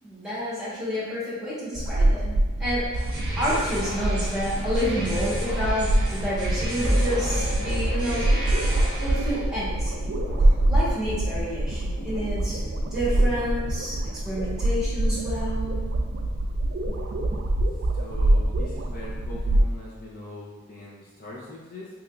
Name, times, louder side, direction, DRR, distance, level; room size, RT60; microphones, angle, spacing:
voice 1, 0.0-2.8 3.4-8.3 9.0-10.1 10.7-12.6 12.9-14.0 14.2-15.8, equal, 5° right, -10 dB, 1.1 m, -29 dB
sound 1, 1.7-19.6, right 1 dB, 55° right, 0.3 m, -25 dB
sound 2, 2.9-9.4, right 1 dB, 25° right, 0.8 m, -35 dB
sound 3, 5.0-16.0, equal, 65° left, 0.9 m, -34 dB
voice 2, 18.0-21.9, left 1 dB, 45° left, -6 dB, 0.5 m, -41 dB
3.4 x 3.0 x 2.4 m, 1.2 s
head